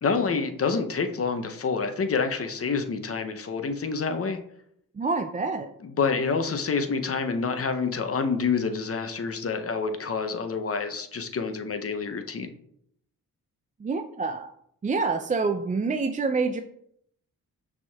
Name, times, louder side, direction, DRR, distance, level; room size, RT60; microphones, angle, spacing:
voice 1, 0.0-4.4 5.8-12.5, left 5 dB, 40° left, 7 dB, 0.7 m, -27 dB
voice 2, 5.0-5.7 13.8-14.5 14.8-16.6, right 4 dB, 20° right, 6 dB, 0.4 m, -27 dB
5.9 x 3.6 x 2.3 m, 0.71 s
supercardioid pair, 40°, 37 cm